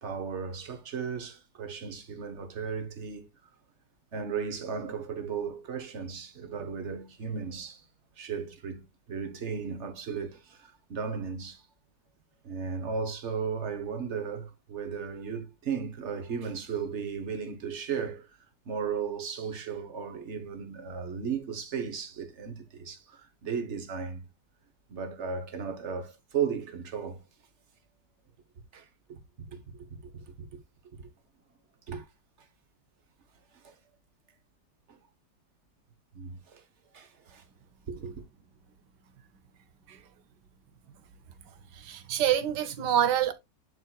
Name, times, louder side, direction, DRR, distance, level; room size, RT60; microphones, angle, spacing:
voice 1, 0.0-3.5 4.1-7.9 8.2-11.7 12.4-18.4 18.6-24.2 24.9-27.2 28.7-31.1 31.9-32.1 32.4-32.5 33.5-33.7 34.9-35.0 36.1-36.6 36.9-37.4 37.9-38.2, right 6 dB, 45° right, 1.3 m, -36 dB
voice 2, 41.8-43.3, right 10 dB, 70° right, 1.5 m, -26 dB
11.0 x 4.5 x 2.3 m
omnidirectional pair, 2.0 m